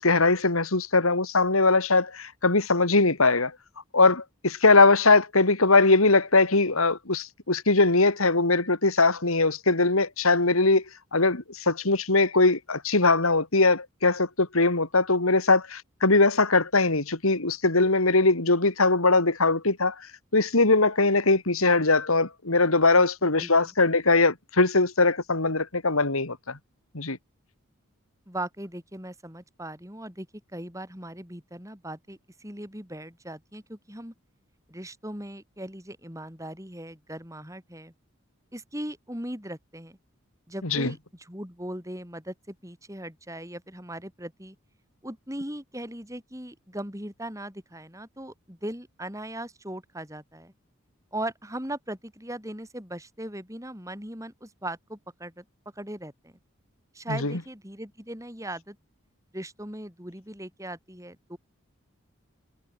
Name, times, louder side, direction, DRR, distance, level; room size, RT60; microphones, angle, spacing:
voice 1, 0.0-3.5 3.9-10.8 11.1-20.1 20.3-26.6 26.9-27.2 40.6-40.9 57.1-57.3, left 3 dB, 85° left, 3.1 m, -21 dB
voice 2, 23.4-23.7 28.3-30.3 30.5-34.1 34.7-37.9 38.5-40.0 40.5-44.6 45.0-50.5 51.1-55.4 55.7-56.3 56.9-58.8 59.3-61.4, right 1 dB, 15° right, 6.8 m, -38 dB
head